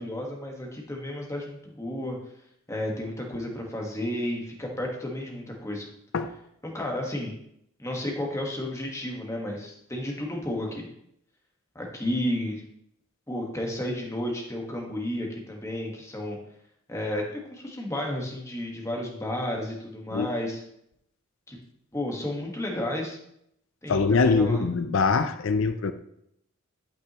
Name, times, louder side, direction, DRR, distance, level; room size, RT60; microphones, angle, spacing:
voice 1, 0.0-2.2 2.7-5.9 6.6-7.3 7.8-10.8 11.7-12.6 13.3-16.4 16.9-20.6 21.5-21.6 21.9-23.2 23.8-24.6, left 1 dB, 15° left, 1.4 m, -32 dB
voice 2, 23.9-25.9, left 4 dB, 65° left, 0.4 m, -23 dB
11.5 x 5.9 x 3.0 m
head